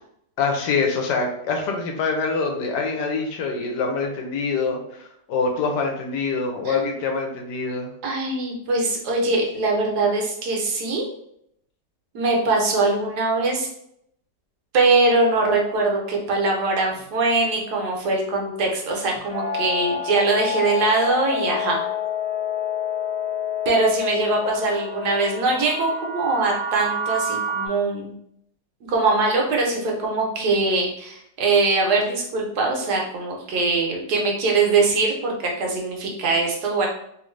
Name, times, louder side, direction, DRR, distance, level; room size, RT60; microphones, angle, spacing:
voice 1, 0.4-4.8 5.3-7.9, left 4 dB, 75° left, 2 dB, 1.2 m, -25 dB
voice 2, 6.6-7.0 8.0-11.0 12.1-13.7 14.7-21.9 23.7-28.1 28.9-36.9, right 3 dB, 70° right, 0 dB, 1.2 m, -22 dB
sound 1, 19.3-27.7, left 4 dB, 45° right, 0.3 m, -28 dB
3.0 x 2.5 x 3.1 m, 0.73 s
omnidirectional pair, 1.9 m